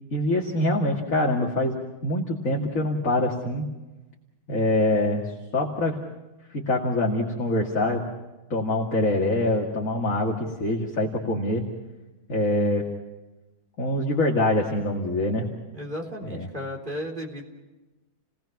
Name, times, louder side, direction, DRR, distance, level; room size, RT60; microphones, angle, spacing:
voice 1, 0.1-3.7 4.5-5.2 5.5-6.0 6.5-8.0 8.5-11.6 12.3-12.8 13.8-15.5 16.3-16.5, left 1 dB, 40° left, -1 dB, 2.6 m, -24 dB
voice 2, 15.7-17.4, equal, 25° right, -1 dB, 3.7 m, -34 dB
30.0 x 18.5 x 5.9 m, 1.1 s
omnidirectional pair, 2.2 m